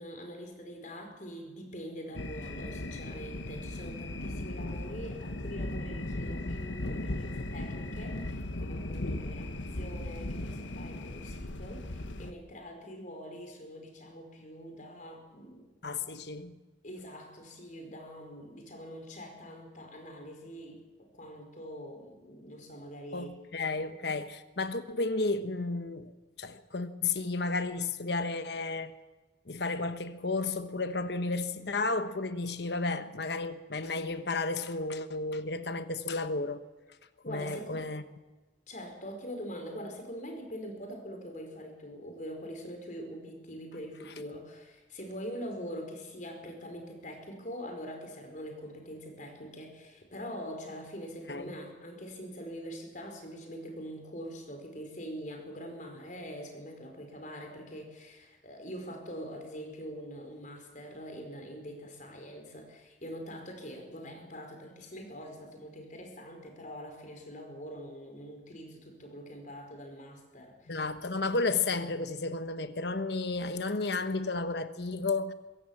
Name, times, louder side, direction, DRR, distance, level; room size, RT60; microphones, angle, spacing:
voice 1, 0.0-15.7 16.8-23.3 37.2-37.8 38.7-70.8, equal, 45° left, 4.9 m, -44 dB
sound 1, 2.2-12.3, left 1 dB, 85° left, 1.5 m, -37 dB
voice 2, 15.8-16.5 23.1-28.9 29.5-36.6 37.3-38.0 51.3-51.5 70.7-75.3, left 3 dB, 60° left, 1.1 m, -32 dB
23.0 x 16.5 x 7.3 m
head